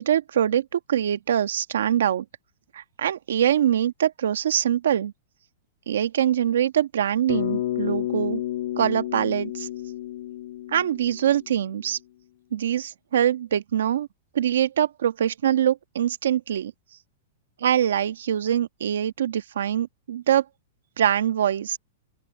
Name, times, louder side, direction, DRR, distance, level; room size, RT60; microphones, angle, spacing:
voice 1, 0.0-2.2 2.7-5.1 5.9-8.4 8.8-9.7 10.7-12.0 12.5-14.1 14.3-16.7 17.6-20.4 21.0-21.8, right 10 dB, 85° right, 1.5 m, -23 dB
Bass guitar, 7.3-11.7, left 13 dB, 60° left, 1.3 m, -30 dB
open air
supercardioid pair, 170°, 0 cm